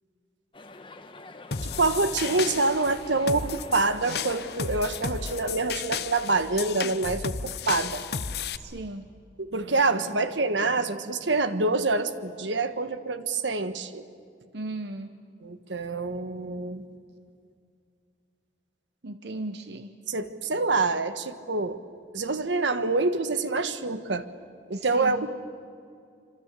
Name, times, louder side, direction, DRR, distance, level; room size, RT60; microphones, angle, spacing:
sound 1, 0.5-5.7, left 2 dB, 25° left, 1.2 m, -47 dB
sound 2, 1.5-8.6, left 6 dB, 60° left, 0.9 m, -33 dB
voice 1, 1.6-8.0 9.4-14.1 15.4-16.9 20.1-21.8 22.1-24.3 24.7-25.3, right 3 dB, 80° right, 10 dB, 1.4 m, -26 dB
voice 2, 8.6-9.1 14.5-15.1 19.0-19.9 24.7-25.3, right 2 dB, 65° right, 8 dB, 1.0 m, -36 dB
26.0 x 26.0 x 8.4 m, 2.3 s
head